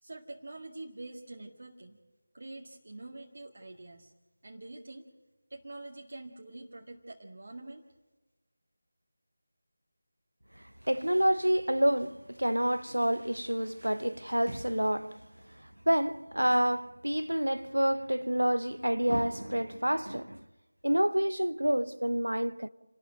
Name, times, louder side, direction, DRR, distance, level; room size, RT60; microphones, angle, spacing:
voice 1, 0.0-2.0 2.3-4.1 4.4-5.1 5.5-7.8, right 2 dB, 50° right, 1.8 m, -45 dB
voice 2, 10.6-15.2 15.9-20.5 20.8-22.7, equal, 80° right, 0.8 m, -28 dB
29.0 x 12.5 x 9.0 m
figure-of-eight pair, 165°, 0 cm